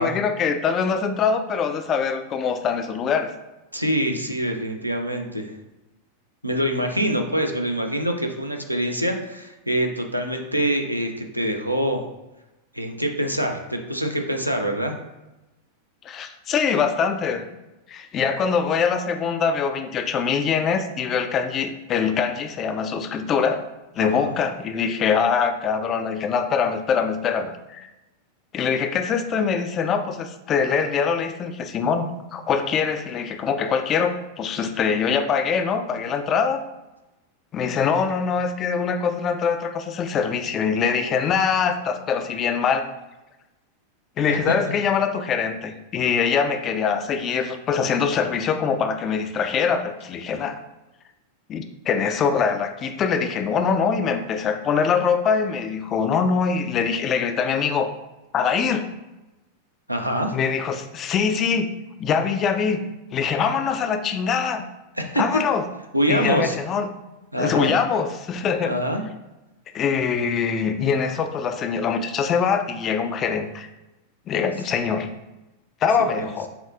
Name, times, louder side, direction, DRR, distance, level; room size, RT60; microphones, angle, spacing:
voice 1, 0.0-3.3 16.0-17.4 17.9-23.6 24.0-27.9 28.5-36.6 37.5-42.9 44.2-50.6 51.5-57.9 58.3-58.9 60.3-61.7 62.0-62.8 63.1-64.6 65.2-65.7 66.1-66.9 67.4-68.7 69.7-73.7 74.3-75.1 75.8-76.5, left 6 dB, 30° left, 7 dB, 0.3 m, -23 dB
voice 2, 3.7-5.5 6.4-12.0 12.7-14.9 24.0-24.4 59.9-60.3 65.0-65.4 65.9-66.6 67.3-67.7 68.6-69.0 76.2-76.3, equal, 90° right, 4 dB, 0.4 m, -25 dB
5.5 x 2.3 x 2.4 m, 1.0 s
figure-of-eight pair, 90°, 0 cm